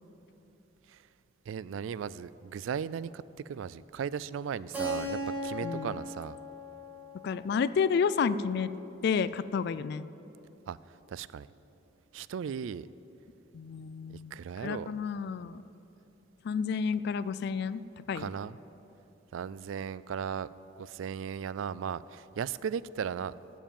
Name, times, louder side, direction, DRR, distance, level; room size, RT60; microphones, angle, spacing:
voice 1, 1.5-6.4 10.7-10.8 11.1-11.5 12.1-12.9 14.1-14.9 18.1-18.6 19.3-20.5 20.8-23.3, right 7 dB, 85° right, 18 dB, 0.3 m, -36 dB
Keyboard (musical), 4.7-9.3, equal, 10° right, 2.2 m, -39 dB
voice 2, 5.6-6.0 7.2-8.7 9.0-10.1 13.5-14.4 14.6-15.6 16.4-17.8 18.1-18.3, left 6 dB, 55° left, 16 dB, 0.3 m, -30 dB
12.5 x 7.4 x 7.2 m, 3.0 s
head